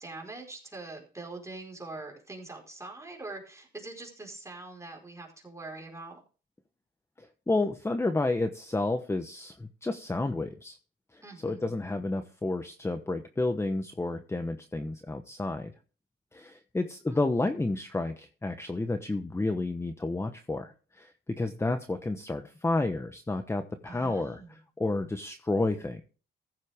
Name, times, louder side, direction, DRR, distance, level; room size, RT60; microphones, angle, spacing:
voice 1, 0.0-6.2 11.2-11.8 17.1-17.2 23.9-24.6, right 2 dB, 15° right, 1 dB, 4.7 m, -43 dB
voice 2, 7.2-10.8 11.1-15.7 16.3-21.1 21.4-24.4 24.8-26.0, left 2 dB, 15° left, 8 dB, 1.0 m, -31 dB
15.0 x 7.5 x 3.6 m, 0.37 s
cardioid pair, 90°, 20 cm